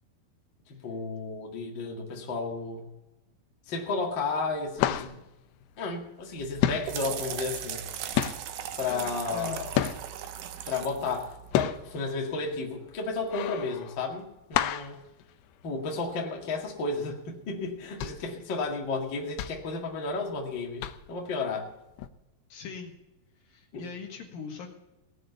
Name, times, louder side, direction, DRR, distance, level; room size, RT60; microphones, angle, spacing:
voice 1, 0.7-2.9 3.7-5.2 5.8-7.9 8.8-9.7 10.6-15.0 15.6-21.7 23.7-23.8, left 3 dB, 35° left, -1 dB, 2.2 m, -33 dB
sound 1, 3.7-4.1 4.4-6.3 6.6-10.3 10.8-16.1 16.4-16.5 16.9-17.1 17.7-20.4 20.8-21.3 22.0-22.1, left 12 dB, 85° left, 2.6 m, -31 dB
sound 2, 6.4-12.0, right 10 dB, 70° right, 2.0 m, -38 dB
voice 2, 8.9-9.6 22.5-22.9 23.5-24.7, left 4 dB, 65° left, 2 dB, 3.0 m, -40 dB
18.5 x 6.5 x 8.1 m, 0.96 s
omnidirectional pair, 4.6 m